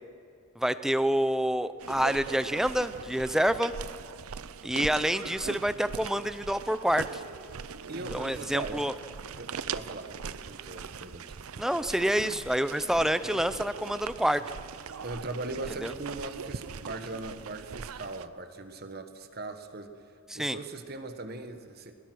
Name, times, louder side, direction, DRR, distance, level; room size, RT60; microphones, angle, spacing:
voice 1, 0.6-3.7 4.6-7.2 8.1-8.9 11.6-14.4 15.8-15.9 20.3-20.6, equal, ahead, 13 dB, 0.5 m, -27 dB
sound 1, 1.8-18.3, right 6 dB, 90° right, 0.6 m, -41 dB
voice 2, 7.9-8.9 9.4-11.4 15.0-20.0 20.3-21.9, right 2 dB, 45° right, 8 dB, 1.4 m, -40 dB
21.0 x 20.5 x 6.2 m, 2.5 s
head